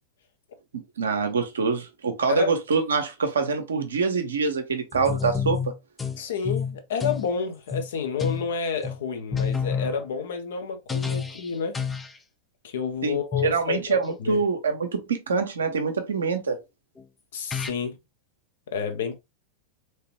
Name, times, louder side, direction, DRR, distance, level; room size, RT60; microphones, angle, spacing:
voice 1, 0.7-5.7 13.0-16.6, right 5 dB, 70° right, 0.8 m, -25 dB
sound 1, 4.9-6.2 6.5-7.3 7.7-7.9 8.2-8.5 8.8-9.0 9.3-10.0 10.9-11.5 11.7-12.2 13.3-13.6 17.0-17.1 17.5-17.7, left 6 dB, 15° left, 0.4 m, -28 dB
voice 2, 6.2-11.8 12.6-14.4 17.3-18.0 18.7-19.2, left 6 dB, 60° left, 0.8 m, -30 dB
3.2 x 2.9 x 2.9 m
figure-of-eight pair, 90°, 0 cm